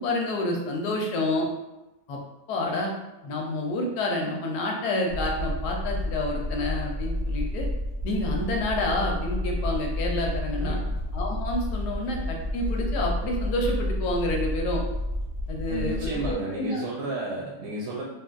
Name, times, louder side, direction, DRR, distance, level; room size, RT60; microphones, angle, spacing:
voice 1, 0.0-1.5 2.1-2.2 2.5-2.9 3.2-7.7 8.0-10.8 11.1-14.8 15.5-16.8, left 2 dB, 90° left, 0 dB, 1.2 m, -29 dB
sound 1, 5.1-16.3, left 1 dB, 65° right, 0.9 m, -30 dB
voice 2, 10.6-10.9 15.7-18.0, right 2 dB, 85° right, -3 dB, 1.2 m, -32 dB
3.1 x 2.6 x 2.3 m, 0.99 s
omnidirectional pair, 1.7 m